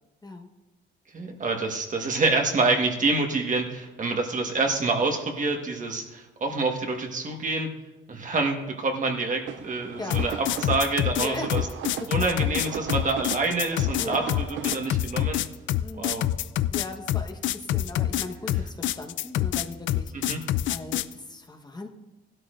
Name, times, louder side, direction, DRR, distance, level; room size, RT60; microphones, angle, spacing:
voice 1, 1.1-7.7 8.1-11.6 12.1-15.4 16.0-16.2 20.1-20.4, right 3 dB, 40° right, 3 dB, 1.5 m, -27 dB
sound 1, 9.5-14.9, right 9 dB, 75° right, 0.5 m, -37 dB
sound 2, 10.1-21.1, left 12 dB, 75° left, 0.4 m, -26 dB
voice 2, 11.2-11.5 12.0-12.1 14.0-14.4 15.8-16.3 16.7-21.9, left 2 dB, 20° left, 2 dB, 1.2 m, -38 dB
16.5 x 12.5 x 2.6 m, 1.1 s
cardioid pair, 90°, 20 cm